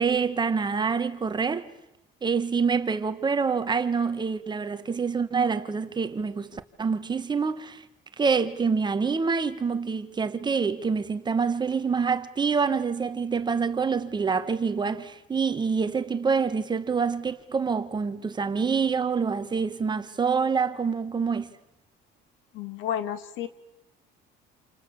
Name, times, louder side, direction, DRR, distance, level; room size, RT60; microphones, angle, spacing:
voice 1, 0.0-1.7 2.2-7.8 8.2-21.5, right 5 dB, 20° right, 1.3 m, -26 dB
voice 2, 22.5-23.5, left 9 dB, 75° left, 2.0 m, -31 dB
28.0 x 28.0 x 6.9 m
cardioid pair, 135°, 20 cm